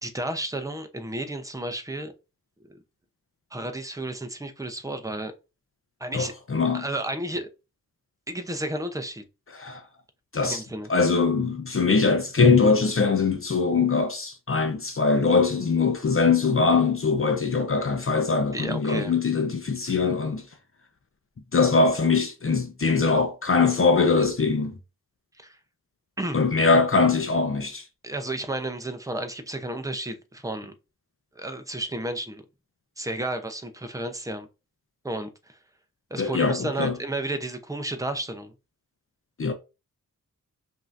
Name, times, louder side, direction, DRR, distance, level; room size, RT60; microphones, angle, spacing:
voice 1, 0.0-2.1 3.5-5.3 6.0-6.3 6.7-7.5 8.3-9.2 10.4-10.9 18.5-19.1 19.9-20.0 25.4-25.6 26.2-26.4 28.0-30.7 31.4-32.4 33.0-34.5 35.0-35.6 36.1-38.5, right 1 dB, 10° right, 0.7 m, -32 dB
voice 2, 6.1-6.8 9.5-9.8 10.3-10.6 10.9-20.4 21.5-24.8 26.3-27.8 36.2-36.9 39.4-39.5, left 4 dB, 40° left, 0.7 m, -22 dB
5.4 x 2.8 x 2.6 m
wide cardioid pair, 80°, 34 cm